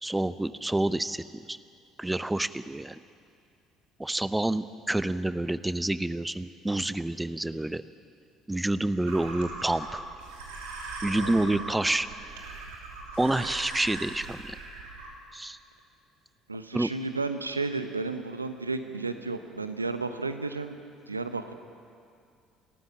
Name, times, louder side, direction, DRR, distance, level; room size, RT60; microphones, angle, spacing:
voice 1, 0.0-1.6 2.0-3.0 4.0-7.8 8.5-10.0 11.0-12.1 13.2-14.6 15.3-15.6 16.7-16.9, right 1 dB, 10° right, 15 dB, 0.7 m, -28 dB
sound 1, 9.0-15.1, right 2 dB, 70° right, 3.0 m, -39 dB
voice 2, 11.1-11.7 16.5-20.8 21.1-21.5, right 3 dB, 85° right, 9 dB, 0.9 m, -33 dB
30.0 x 13.5 x 7.3 m, 2.4 s
figure-of-eight pair, 55°, 0 cm